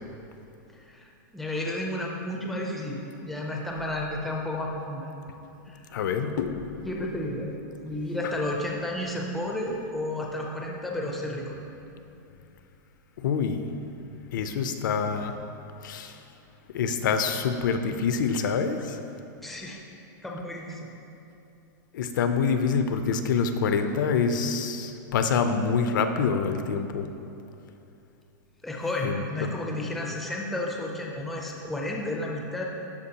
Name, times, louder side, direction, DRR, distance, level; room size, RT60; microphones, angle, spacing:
voice 1, 0.8-5.1 5.7-5.9 6.8-11.5 19.4-19.8 20.2-20.9 28.6-32.7, left 1 dB, ahead, -2 dB, 0.4 m, -32 dB
voice 2, 5.9-6.8 13.2-13.6 14.3-15.4 15.8-16.1 16.7-19.0 21.9-27.1 29.0-29.5, left 5 dB, 75° left, 8 dB, 0.5 m, -26 dB
12.0 x 4.5 x 2.8 m, 2.8 s
supercardioid pair, 175°, 10 cm